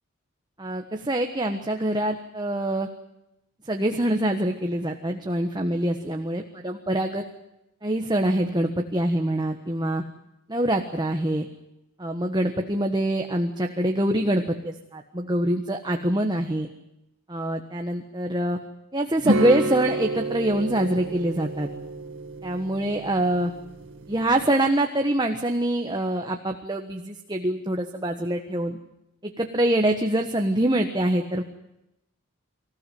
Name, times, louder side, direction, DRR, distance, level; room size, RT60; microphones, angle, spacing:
voice 1, 0.6-2.9 3.7-7.2 7.8-10.0 10.5-11.5 12.0-16.7 17.3-18.6 18.9-21.7 22.4-23.5 24.1-28.8 29.2-31.4, right 1 dB, 20° right, 4 dB, 1.4 m, -25 dB
sound 1, 19.2-24.4, right 2 dB, 60° right, 2.8 m, -29 dB
26.0 x 15.5 x 9.4 m, 0.87 s
head